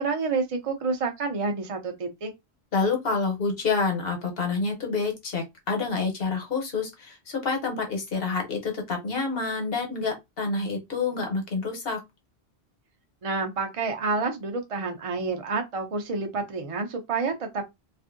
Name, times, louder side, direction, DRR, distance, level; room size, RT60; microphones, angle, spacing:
voice 1, 0.0-2.3 13.2-17.6, right 4 dB, 45° right, 0.5 m, -29 dB
voice 2, 2.7-12.0, left 4 dB, 65° left, 1.1 m, -28 dB
2.6 x 2.4 x 2.5 m
omnidirectional pair, 1.1 m